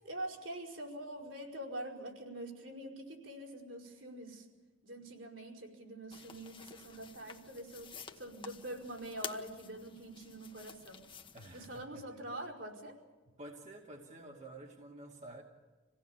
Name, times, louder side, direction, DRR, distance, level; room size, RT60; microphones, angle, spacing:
voice 1, 0.0-4.5 4.8-7.9 8.2-11.0 11.5-13.0, right 1 dB, 75° right, 0 dB, 5.2 m, -45 dB
sound 1, 6.1-11.9, left 6 dB, 25° left, 1.1 m, -50 dB
voice 2, 11.3-12.0 13.4-15.4, right 1 dB, 40° right, -1 dB, 2.5 m, -50 dB
26.5 x 17.5 x 8.7 m, 1.3 s
head